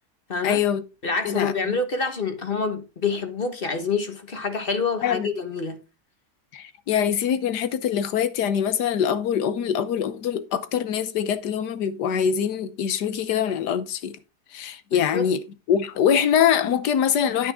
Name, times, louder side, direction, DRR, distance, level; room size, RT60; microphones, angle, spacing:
voice 1, 0.4-0.8 1.2-1.8 5.0-5.3 6.5-14.2 14.5-15.4 15.7-17.5, left 8 dB, 90° left, 1.5 m, -24 dB
voice 2, 1.0-5.8 14.9-15.3, left 4 dB, 35° left, 1.4 m, -27 dB
9.5 x 8.7 x 3.5 m
omnidirectional pair, 1.7 m